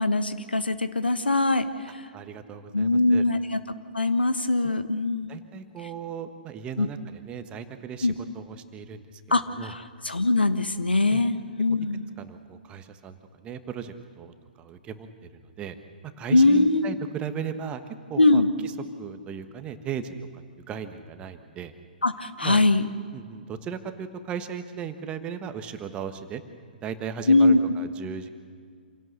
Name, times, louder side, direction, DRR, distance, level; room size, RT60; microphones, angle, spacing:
voice 1, 0.0-1.6 2.7-3.6 3.9-5.3 6.8-6.9 8.0-8.1 9.3-9.8 10.0-12.1 16.3-16.8 18.2-18.5 22.0-22.8 27.3-27.6, left 2 dB, 85° left, 11 dB, 1.2 m, -21 dB
voice 2, 2.1-3.2 5.3-9.7 11.1-11.2 12.2-15.1 15.4-15.8 16.2-17.8 18.1-18.7 19.0-21.7 22.4-22.6 23.1-26.4 26.8-28.3, right 7 dB, 20° right, 9 dB, 1.3 m, -37 dB
27.0 x 17.0 x 6.6 m, 2.1 s
figure-of-eight pair, 125°, 5 cm